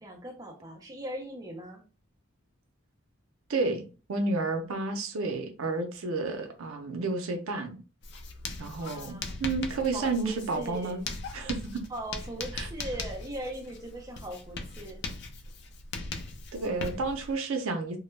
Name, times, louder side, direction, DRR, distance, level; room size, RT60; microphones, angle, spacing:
voice 1, 0.0-1.8 8.8-9.4 9.9-11.1 11.9-15.0, right 1 dB, 15° right, 0.5 m, -40 dB
voice 2, 3.5-7.8 8.6-11.0 11.3-11.8 12.5-12.7 16.5-18.0, right 3 dB, 75° right, 0.5 m, -31 dB
Writing, 8.0-17.3, left 3 dB, 50° left, 0.3 m, -39 dB
2.2 x 2.0 x 3.1 m
head